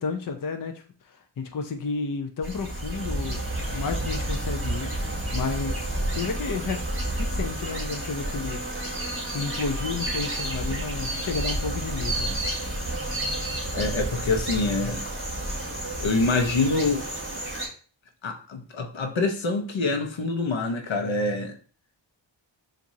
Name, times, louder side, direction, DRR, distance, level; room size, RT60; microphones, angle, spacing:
voice 1, 0.0-3.4 3.7-6.9 7.1-8.6 9.3-12.4, left 5 dB, 45° left, 0.6 m, -32 dB
sound 1, 2.4-17.7, right 1 dB, 25° right, 2.2 m, -30 dB
voice 2, 13.7-15.0 16.0-17.1 18.2-21.6, left 3 dB, 80° left, 0.9 m, -25 dB
7.3 x 2.6 x 2.7 m
wide cardioid pair, 105°, 46 cm